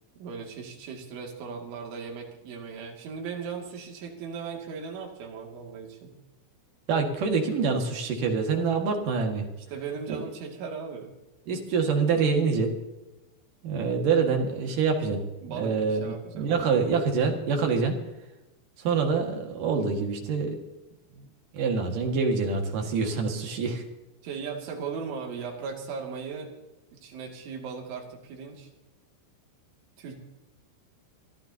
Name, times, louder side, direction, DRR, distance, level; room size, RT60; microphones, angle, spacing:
voice 1, 0.2-6.1 9.7-11.1 15.4-16.8 24.2-26.5 26.9-28.7 30.0-30.2, right 5 dB, 70° right, 0 dB, 4.9 m, -37 dB
voice 2, 6.9-9.5 10.1-10.2 11.5-12.7 13.6-15.2 15.5-18.0 18.8-20.6 21.5-23.8, right 5 dB, 55° right, 2 dB, 2.9 m, -26 dB
25.0 x 13.5 x 2.9 m, 1.0 s
omnidirectional pair, 5.8 m